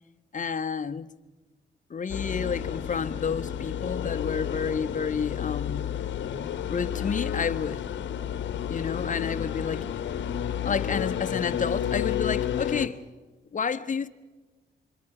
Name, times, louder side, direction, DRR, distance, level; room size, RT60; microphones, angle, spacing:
voice 1, 0.3-1.1 1.9-6.0 6.7-7.8 8.7-9.9 10.6-13.0 13.5-14.1, left 6 dB, 40° left, 1.2 m, -30 dB
sound 1, 2.1-12.9, left 9 dB, 75° left, 1.1 m, -31 dB
26.5 x 22.5 x 5.0 m
cardioid pair, 65°, 19 cm